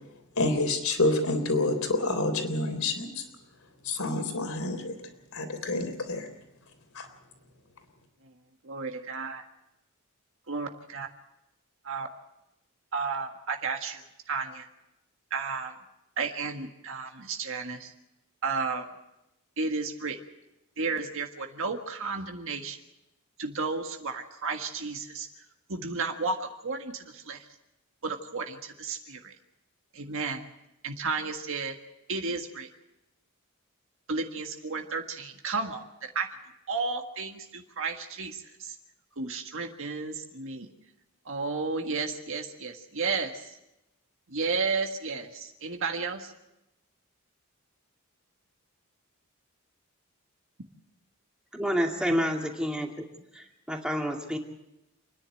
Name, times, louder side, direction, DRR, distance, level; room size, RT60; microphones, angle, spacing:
voice 1, 0.4-3.2 3.8-4.9 5.3-6.3 6.9-7.1, left 2 dB, 70° left, 7 dB, 3.5 m, -28 dB
voice 2, 8.6-9.4 10.5-11.1 11.8-12.1 12.9-14.0 14.3-14.7 15.3-15.7 16.2-17.9 18.4-18.9 19.6-20.2 20.8-22.8 23.4-25.3 25.7-27.5 28.0-29.3 29.9-30.5 30.8-31.8 32.1-32.7 34.1-36.3 36.7-38.8 39.2-40.7 41.2-43.6 44.3-46.3 52.1-52.2, right 4 dB, 65° right, 4 dB, 1.7 m, -33 dB
voice 3, 51.5-53.1 53.3-54.4, equal, 5° right, 1 dB, 2.5 m, -29 dB
28.5 x 10.5 x 9.1 m, 0.92 s
head